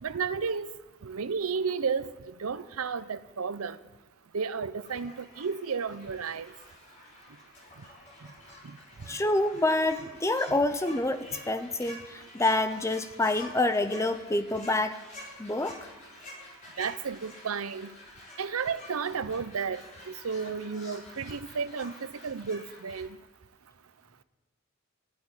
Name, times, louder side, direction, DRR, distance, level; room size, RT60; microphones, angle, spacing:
voice 1, 0.0-0.7 1.0-3.8 4.3-6.5 16.8-17.9 18.4-19.8 20.1-23.1, right 5 dB, 85° right, 15 dB, 0.6 m, -32 dB
sound 1, 4.8-23.0, left 1 dB, 35° left, 4.6 m, -49 dB
voice 2, 9.1-15.0 15.4-15.9, left 2 dB, 15° left, 10 dB, 0.6 m, -27 dB
13.0 x 8.5 x 9.6 m, 1.1 s
head